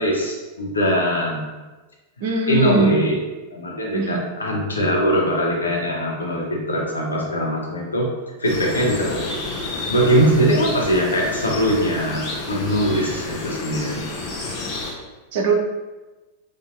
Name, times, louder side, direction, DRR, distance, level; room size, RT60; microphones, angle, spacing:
voice 1, 0.0-1.5 2.5-3.2 3.5-8.1 8.4-9.2 9.9-14.0, equal, 75° left, -3 dB, 0.9 m, -21 dB
voice 2, 2.2-3.0 3.9-4.2 15.3-15.5, right 3 dB, 50° right, 2 dB, 0.5 m, -21 dB
sound 1, 8.4-14.9, left 3 dB, 40° left, 0.9 m, -30 dB
5.4 x 2.6 x 2.7 m, 1.2 s
figure-of-eight pair, 90°, 0 cm